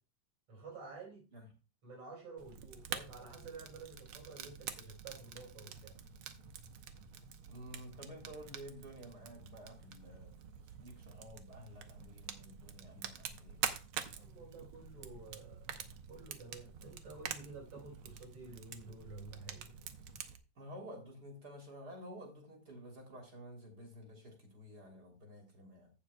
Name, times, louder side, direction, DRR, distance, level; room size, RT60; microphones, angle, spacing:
voice 1, 0.5-1.2 1.8-6.0 14.1-15.6 16.1-19.9, right 4 dB, 55° right, -2 dB, 5.4 m, -51 dB
Fire, 2.4-20.4, right 8 dB, 70° right, 1.3 m, -46 dB
voice 2, 7.5-10.3 10.6-13.6 20.5-25.9, equal, 35° right, 2 dB, 3.2 m, -51 dB
15.5 x 7.1 x 2.2 m, 0.32 s
omnidirectional pair, 3.4 m